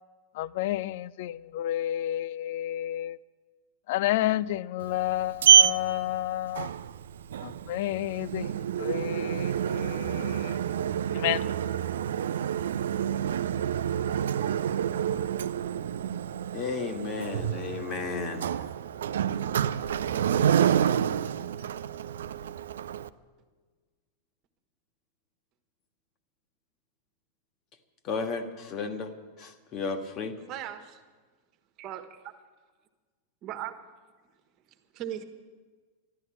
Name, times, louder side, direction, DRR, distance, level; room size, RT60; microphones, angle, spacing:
voice 1, 0.4-3.2 3.9-6.7 7.4-8.5 8.8-10.6 11.1-11.4, left 14 dB, 50° left, 0.4 m, -30 dB
Sliding door, 4.8-23.1, right 9 dB, 60° right, 0.5 m, -27 dB
voice 2, 16.5-18.5 28.0-29.1 29.4-30.4, left 4 dB, 35° left, 1.6 m, -33 dB
voice 3, 30.5-31.0 31.8-32.3 33.4-33.8 34.9-35.2, right 11 dB, 40° right, 1.4 m, -37 dB
12.5 x 12.0 x 8.5 m
figure-of-eight pair, 90°, 0 cm